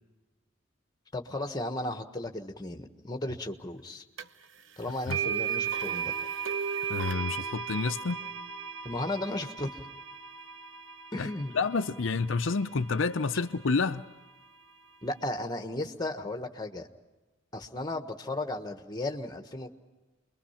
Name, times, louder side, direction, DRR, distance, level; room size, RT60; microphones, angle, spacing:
voice 1, 1.1-4.0 4.8-6.1 8.8-9.9 11.1-11.5 15.0-16.9 17.5-19.7, left 1 dB, 20° left, 5 dB, 1.4 m, -35 dB
sound 1, 4.2-4.3 5.1-13.1, right 7 dB, 75° right, 0.9 m, -35 dB
voice 2, 6.9-8.2 11.2-11.3 11.5-14.0, left 4 dB, 75° left, 8 dB, 0.7 m, -29 dB
28.0 x 22.5 x 5.8 m, 1.2 s
head